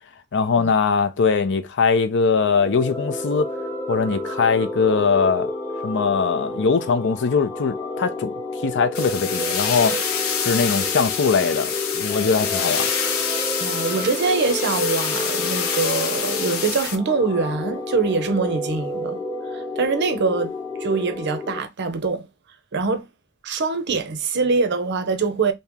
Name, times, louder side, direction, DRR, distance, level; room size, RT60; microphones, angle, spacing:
voice 1, 0.3-3.5 3.9-5.5 5.8-8.3 8.6-10.0 10.4-12.9, left 5 dB, 55° left, 0.5 m, -21 dB
sound 1, 2.3-21.6, left 2 dB, 10° left, 0.9 m, -30 dB
sound 2, 8.9-17.0, left 6 dB, 75° left, 0.8 m, -26 dB
voice 2, 13.6-19.2 19.5-20.5 20.8-22.3 22.7-23.1 23.4-25.5, right 4 dB, 55° right, 0.6 m, -23 dB
3.0 x 2.8 x 3.5 m
head